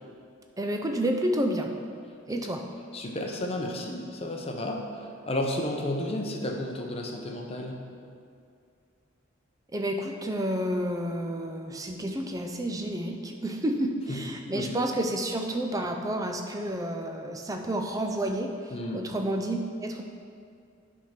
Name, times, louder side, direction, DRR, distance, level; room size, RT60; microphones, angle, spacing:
voice 1, 0.6-1.7 2.3-2.6 9.7-20.0, right 1 dB, 15° right, 3 dB, 0.5 m, -30 dB
voice 2, 2.9-4.9 5.3-7.8 14.1-14.2 14.5-14.8 18.7-19.1, left 1 dB, 30° left, 1 dB, 0.7 m, -32 dB
9.1 x 3.6 x 5.8 m, 2.3 s
head